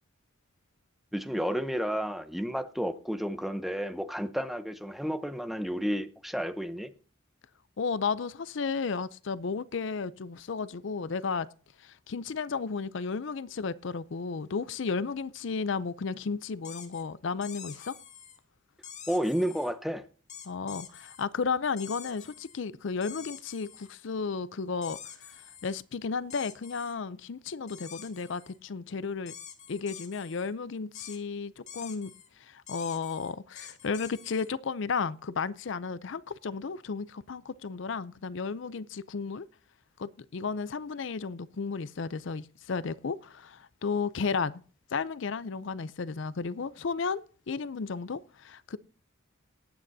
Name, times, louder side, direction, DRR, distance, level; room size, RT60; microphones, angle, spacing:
voice 1, 1.1-6.9 19.1-20.0, equal, ahead, 0.7 m, -31 dB
voice 2, 7.8-11.5 11.8-18.0 20.4-25.0 25.3-29.3 29.7-32.1 32.4-39.5 40.0-44.5 44.9-48.8, left 5 dB, 60° left, 0.5 m, -33 dB
sound 1, 16.6-17.0 17.4-18.4 18.8-19.7 20.3-21.2 21.8-22.6 23.0-24.0 24.8-25.8 26.3-27.0 27.7-28.6 29.3-30.5 31.0-31.2 31.7-32.3 32.7-34.5, left 8 dB, 35° left, 1.8 m, -47 dB
18.5 x 9.0 x 2.7 m
head